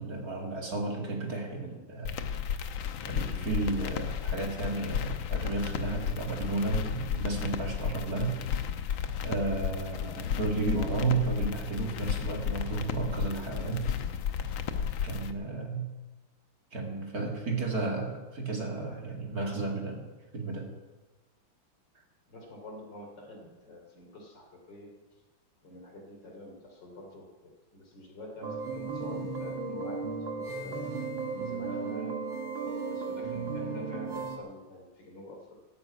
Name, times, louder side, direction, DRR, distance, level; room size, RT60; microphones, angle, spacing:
voice 1, 0.0-2.2 3.1-8.4 9.2-13.9 15.0-15.9 16.7-20.1 20.3-20.7, right 3 dB, 45° right, 1 dB, 2.6 m, -33 dB
sound 1, 2.1-15.3, left 8 dB, 70° left, 1.6 m, -33 dB
voice 2, 22.3-24.9 25.6-30.9 31.3-32.5 32.8-35.5, left 1 dB, 55° left, 2 dB, 3.7 m, -47 dB
sound 2, 28.4-34.4, right 4 dB, 65° right, 2.2 m, -35 dB
14.0 x 9.7 x 9.3 m, 1.2 s
omnidirectional pair, 2.3 m